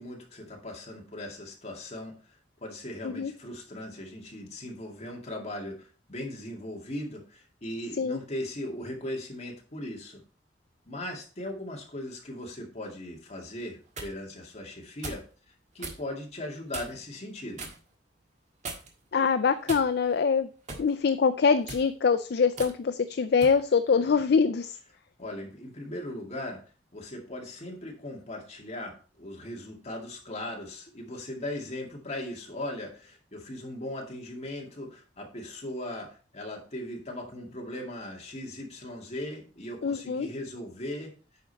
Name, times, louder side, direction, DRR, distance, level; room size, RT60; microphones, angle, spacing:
voice 1, 0.0-10.2 10.9-15.2 15.7-17.7 25.2-26.6 26.9-41.1, left 1 dB, 35° left, 0 dB, 2.2 m, -38 dB
sound 1, 13.6-14.1 15.0-15.3 15.8-16.0 16.7-17.1 17.6-17.8 18.6-19.0 19.7-20.2 20.7-20.9 21.6-21.9 22.6-22.7 23.4-23.6, right 3 dB, 40° right, 1.6 m, -39 dB
voice 2, 19.1-20.5 20.8-24.7 39.8-40.3, left 5 dB, 60° left, 11 dB, 0.4 m, -24 dB
9.2 x 5.2 x 4.1 m, 0.37 s
head